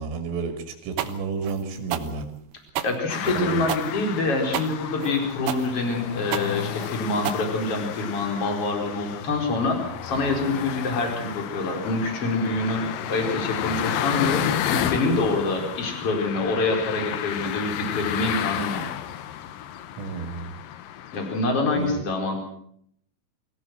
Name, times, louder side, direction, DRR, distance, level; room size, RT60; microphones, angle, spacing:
voice 1, 0.0-2.3 3.4-3.6 20.0-20.5 21.7-22.0, right 5 dB, 90° right, 6 dB, 4.9 m, -31 dB
sound 1, 1.0-8.0, right 11 dB, 70° right, 2.8 m, -31 dB
voice 2, 2.8-18.8 21.1-22.4, left 2 dB, 30° left, 3 dB, 4.9 m, -26 dB
sound 2, 3.1-21.4, left 11 dB, 85° left, 1.9 m, -32 dB
23.5 x 16.0 x 7.9 m, 0.68 s
omnidirectional pair, 5.6 m